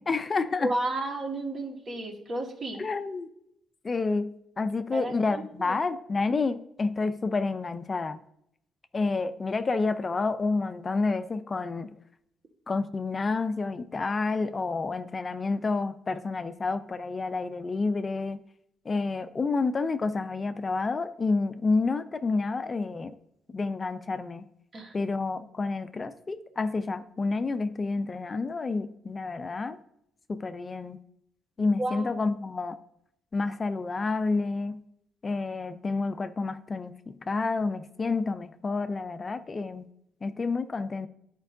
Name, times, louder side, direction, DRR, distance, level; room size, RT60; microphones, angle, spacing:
voice 1, 0.0-0.7 2.8-3.3 3.8-4.3 4.6-8.2 8.9-11.9 12.7-18.4 18.9-23.1 23.5-24.4 24.9-29.8 30.3-31.0 31.6-32.8 33.3-34.8 35.2-39.9 40.2-41.1, left 3 dB, 30° left, 10 dB, 0.4 m, -29 dB
voice 2, 0.6-2.8 4.9-5.8 24.7-25.1 31.6-32.1, right 2 dB, 50° right, 1 dB, 1.5 m, -33 dB
10.5 x 4.5 x 2.6 m, 0.74 s
cardioid pair, 90°, 0 cm